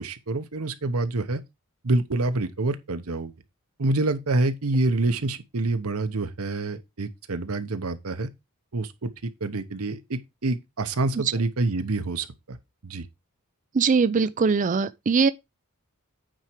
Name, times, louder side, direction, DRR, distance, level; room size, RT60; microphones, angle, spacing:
voice 1, 0.0-1.4 1.8-3.3 3.8-8.3 8.7-12.6 12.8-13.0, right 2 dB, 70° right, 0.9 m, -27 dB
voice 2, 13.7-15.3, right 5 dB, 35° right, 0.4 m, -21 dB
9.0 x 4.7 x 4.5 m
head